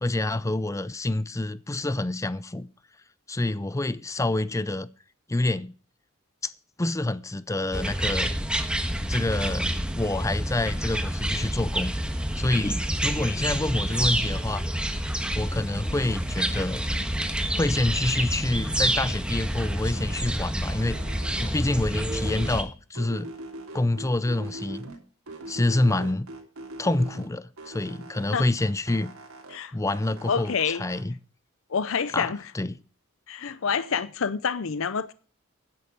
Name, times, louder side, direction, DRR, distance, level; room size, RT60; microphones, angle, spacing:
voice 1, 0.0-2.7 3.3-4.9 5.3-5.7 6.4-6.5 6.8-8.4 9.1-9.7 9.9-11.9 12.4-14.6 15.3-16.8 17.5-21.0 21.4-23.3 23.7-24.9 25.5-26.3 26.8-29.1 29.7-31.2 32.1-32.8, left 2 dB, 15° left, 0.5 m, -27 dB
sound 1, 7.7-22.6, right 1 dB, 5° right, 1.4 m, -28 dB
sound 2, 12.9-13.4 13.7-15.7 16.0-18.0 18.3-20.4 20.6-22.7 23.0-25.0 25.3-27.3 27.6-29.6 29.9-31.0, right 2 dB, 90° right, 3.4 m, -43 dB
voice 2, 30.3-30.8 31.7-32.4 33.3-35.1, left 6 dB, 65° left, 0.6 m, -27 dB
10.5 x 10.0 x 5.2 m
head